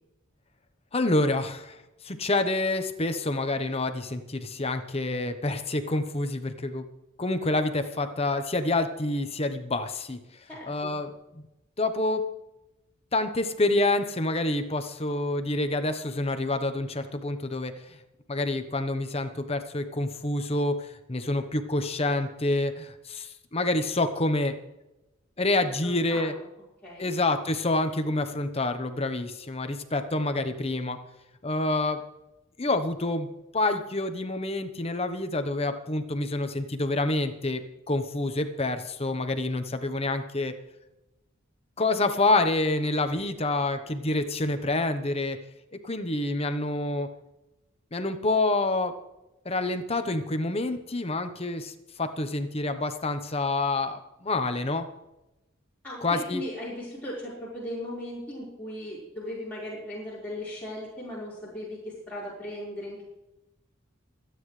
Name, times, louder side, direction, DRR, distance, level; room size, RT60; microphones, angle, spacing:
voice 1, 0.9-1.8 2.0-6.8 7.2-10.2 10.7-11.1 11.8-12.2 13.1-17.7 18.3-24.5 25.4-26.3 27.0-31.0 31.4-32.0 32.6-33.3 33.5-37.6 37.9-40.5 41.8-45.4 45.8-47.1 47.9-48.9 49.4-51.7 52.0-54.8 56.0-56.4, left 2 dB, 30° left, 8 dB, 1.0 m, -27 dB
voice 2, 10.5-11.0 25.8-26.3 26.8-27.1 55.8-63.0, left 1 dB, 10° left, -10 dB, 4.6 m, -37 dB
25.0 x 9.6 x 3.3 m, 0.96 s
head